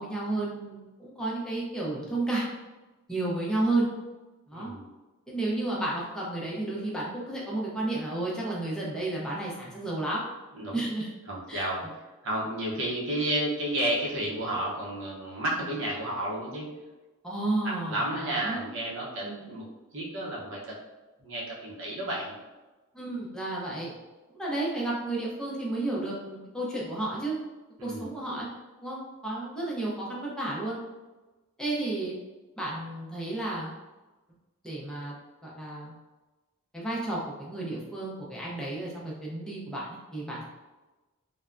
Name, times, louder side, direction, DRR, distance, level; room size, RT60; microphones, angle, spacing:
voice 1, 0.0-2.4 3.1-3.9 4.5-4.7 5.3-10.2 10.7-11.1 11.5-11.6 17.2-18.7 19.2-19.4 22.9-23.9 24.4-27.4 27.8-28.5 28.8-30.8 31.6-32.2 32.6-33.7 34.6-35.1 35.4-35.9 36.7-40.4, right 2 dB, 5° left, -5 dB, 0.6 m, -32 dB
voice 2, 4.5-4.8 10.6-10.8 11.3-11.9 12.2-16.7 17.9-19.6 19.9-20.7 21.2-22.4 27.8-28.1, right 1 dB, 60° right, -4 dB, 0.7 m, -31 dB
3.3 x 2.1 x 2.4 m, 1.1 s
head